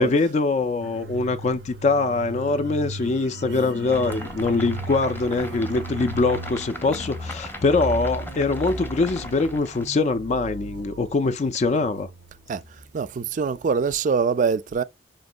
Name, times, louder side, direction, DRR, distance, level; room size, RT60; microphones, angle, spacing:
voice 1, 0.0-12.1, left 3 dB, 40° left, 0.4 m, -23 dB
sound 1, 0.8-13.2 13.5-13.6, right 2 dB, 90° right, 0.6 m, -37 dB
Human voice, 3.4-4.3 5.3-7.1 7.9-9.5, left 1 dB, 85° left, 0.6 m, -43 dB
sound 2, 3.9-10.0, left 1 dB, 10° left, 0.7 m, -39 dB
voice 2, 12.9-14.8, right 5 dB, 45° right, 0.3 m, -23 dB
5.1 x 2.9 x 2.5 m
head